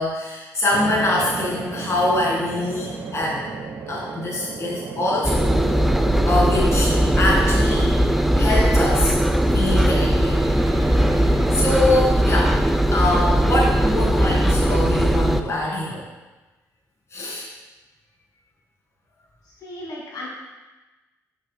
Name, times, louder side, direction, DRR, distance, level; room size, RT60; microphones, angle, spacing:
voice 1, 0.0-3.5 3.9-5.6 6.2-8.0 8.3-9.2 9.5-10.4 11.5-12.6 12.9-16.0 17.1-17.5, left 2 dB, 45° left, -3 dB, 2.0 m, -24 dB
sound 1, 0.7-12.0, right 4 dB, 60° right, 1.1 m, -33 dB
Engine, 5.2-15.4, right 1 dB, ahead, 0.5 m, -19 dB
voice 2, 19.6-20.3, left 1 dB, 75° left, -4 dB, 2.2 m, -35 dB
10.0 x 6.3 x 2.2 m, 1.1 s
cardioid pair, 70°, 7 cm